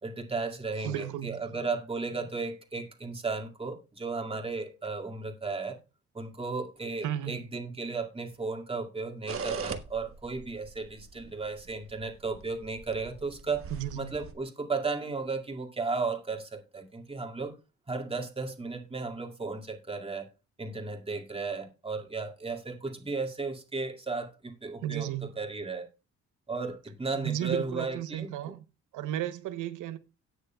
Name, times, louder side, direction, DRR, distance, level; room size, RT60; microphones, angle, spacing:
voice 1, 0.0-5.8 6.1-13.7 14.0-17.5 17.9-20.3 20.6-25.9 26.5-28.5, right 4 dB, 20° right, 2.1 m, -35 dB
voice 2, 0.8-1.4 7.0-7.4 13.7-14.1 24.8-25.3 27.1-28.6 28.9-30.0, right 12 dB, 85° right, 0.9 m, -34 dB
sound 1, 9.3-14.3, right 5 dB, 50° right, 1.2 m, -41 dB
18.0 x 6.4 x 2.3 m
cardioid pair, 90°, 30 cm